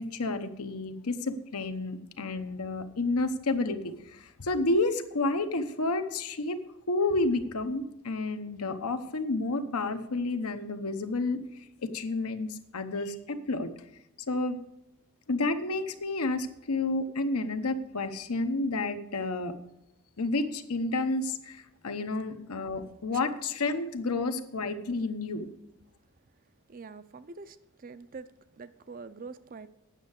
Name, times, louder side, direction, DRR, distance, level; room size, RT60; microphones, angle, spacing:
voice 1, 0.0-6.6 6.9-11.4 11.8-13.7 14.3-14.6 15.3-19.6 20.2-25.5, left 2 dB, 85° left, 8 dB, 0.9 m, -30 dB
voice 2, 26.7-28.3 28.6-29.7, right 4 dB, 40° right, 13 dB, 0.4 m, -45 dB
9.0 x 6.5 x 8.0 m, 0.85 s
head